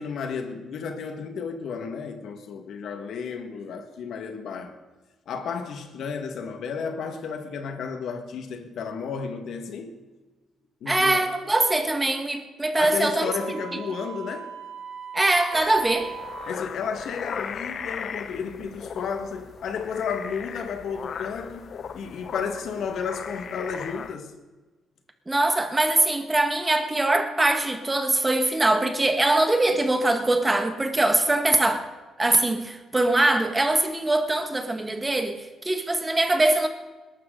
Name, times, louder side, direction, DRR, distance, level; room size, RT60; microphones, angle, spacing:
voice 1, 0.0-4.8 5.3-9.9 10.8-11.2 12.8-14.5 16.4-24.3, left 6 dB, 70° left, 1.9 m, -32 dB
voice 2, 10.9-13.6 15.1-16.1 25.3-31.8 32.2-36.7, right 2 dB, 15° right, 1.7 m, -22 dB
Wind instrument woodwind instrument, 13.1-16.7, right 7 dB, 75° right, 3.9 m, -39 dB
sound 1, 15.5-24.2, left 6 dB, 55° left, 0.8 m, -37 dB
20.5 x 12.5 x 4.0 m
cardioid pair, 90°, 0 cm